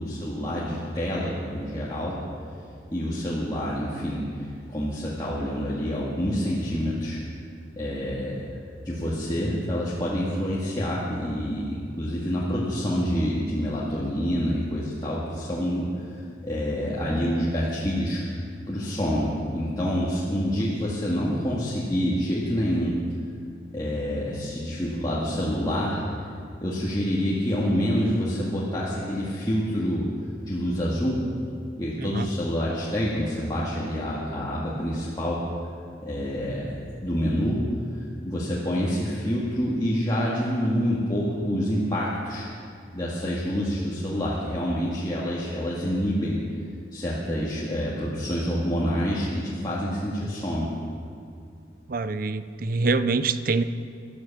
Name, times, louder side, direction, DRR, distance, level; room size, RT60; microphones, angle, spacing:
voice 1, 0.0-2.2 2.9-7.2 7.8-8.4 8.8-18.2 18.7-23.0 23.7-26.1 26.6-30.1 30.5-31.2 31.8-35.4 36.0-37.7 38.3-42.5 42.9-46.4 46.9-50.7, equal, 20° left, -7 dB, 2.1 m, -27 dB
voice 2, 32.0-32.3 51.9-53.6, right 3 dB, 50° right, 13 dB, 0.6 m, -25 dB
13.0 x 12.5 x 7.3 m, 2.5 s
head